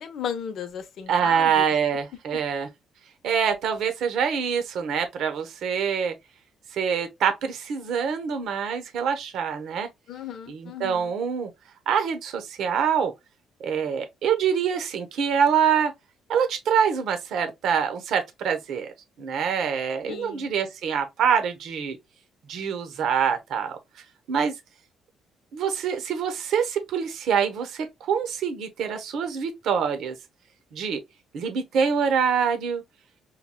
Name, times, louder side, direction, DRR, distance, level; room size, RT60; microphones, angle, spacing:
voice 1, 0.0-1.6 2.3-2.4 10.1-11.1 20.1-20.5, left 8 dB, 65° left, 0.8 m, -35 dB
voice 2, 1.1-2.7 3.2-6.1 6.7-9.9 10.5-11.5 11.9-13.1 13.6-15.9 16.3-18.9 19.2-22.0 22.5-23.8 24.3-24.5 25.5-30.1 30.7-31.0 31.3-32.8, right 7 dB, 70° right, 0.9 m, -25 dB
5.7 x 2.2 x 2.2 m
cardioid pair, 125°, 0 cm